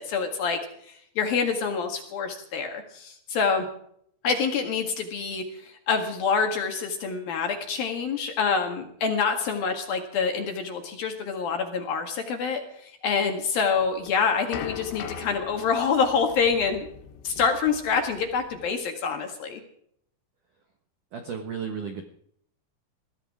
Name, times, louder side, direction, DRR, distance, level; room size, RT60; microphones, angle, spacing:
voice 1, 0.0-3.7 4.2-16.9 17.2-19.6, left 5 dB, 60° left, 4 dB, 2.9 m, -26 dB
sound 1, 13.8-18.7, left 8 dB, 85° left, 4.3 m, -40 dB
voice 2, 21.1-22.0, right 6 dB, 80° right, 5 dB, 1.8 m, -33 dB
21.5 x 15.0 x 3.7 m, 0.67 s
omnidirectional pair, 5.9 m